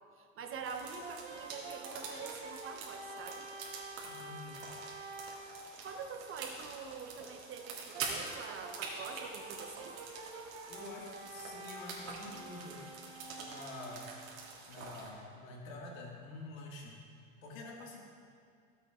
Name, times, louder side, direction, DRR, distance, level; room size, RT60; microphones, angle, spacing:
voice 1, 0.2-3.5 5.8-9.9, right 5 dB, 30° right, 4 dB, 1.0 m, -45 dB
sound 1, 0.6-15.1, right 4 dB, 85° right, 2.2 m, -46 dB
Brass instrument, 1.0-5.6 7.9-14.3, right 2 dB, 65° right, 2.0 m, -48 dB
voice 2, 4.0-4.6 10.7-12.8 13.4-14.1 14.7-17.0 17.4-18.0, left 2 dB, 85° left, -2 dB, 2.1 m, -47 dB
16.5 x 7.7 x 2.5 m, 2.4 s
supercardioid pair, 115°, 40 cm